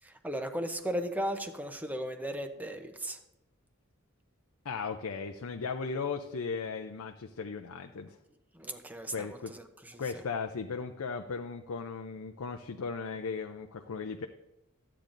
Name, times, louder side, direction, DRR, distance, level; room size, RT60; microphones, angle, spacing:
voice 1, 0.0-3.2 8.5-10.2, equal, 10° right, 7 dB, 0.6 m, -36 dB
voice 2, 4.6-8.2 9.1-9.5 10.0-14.3, left 5 dB, 90° left, 5 dB, 0.5 m, -36 dB
13.5 x 8.6 x 2.6 m, 0.92 s
head